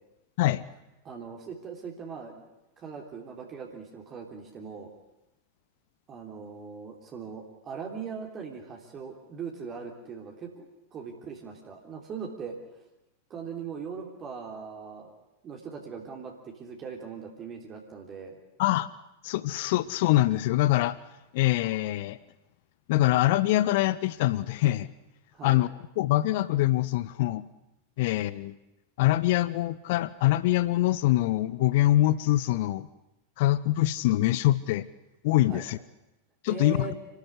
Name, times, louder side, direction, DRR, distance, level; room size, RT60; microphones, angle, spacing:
voice 1, 1.0-2.4 2.8-4.9 6.1-12.6 13.3-15.1 15.4-18.4 25.3-25.6 35.5-35.6 36.5-36.9, right 6 dB, 30° right, 1 dB, 3.4 m, -40 dB
voice 2, 19.2-21.0 21.3-22.2 22.9-24.9 25.4-25.7 26.0-27.4 28.0-28.6 29.0-32.9 33.4-34.9 35.2-35.8 36.4-36.9, left 15 dB, 50° left, 17 dB, 0.7 m, -24 dB
27.5 x 13.0 x 9.9 m, 0.94 s
figure-of-eight pair, 90°, 0 cm